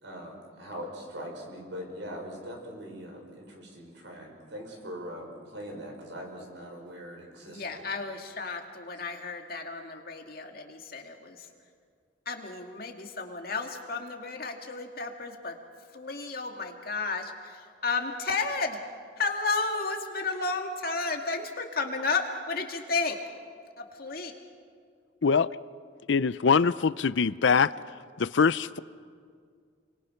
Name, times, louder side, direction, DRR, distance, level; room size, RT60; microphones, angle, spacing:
voice 1, 0.0-7.9, equal, 75° right, 5.8 m, -41 dB
voice 2, 7.5-11.5 12.3-15.6 15.9-18.8 19.2-23.2 23.8-24.3, left 4 dB, 50° left, 2.2 m, -32 dB
voice 3, 26.1-27.7 28.2-28.8, left 5 dB, 70° left, 0.5 m, -23 dB
30.0 x 24.0 x 5.8 m
head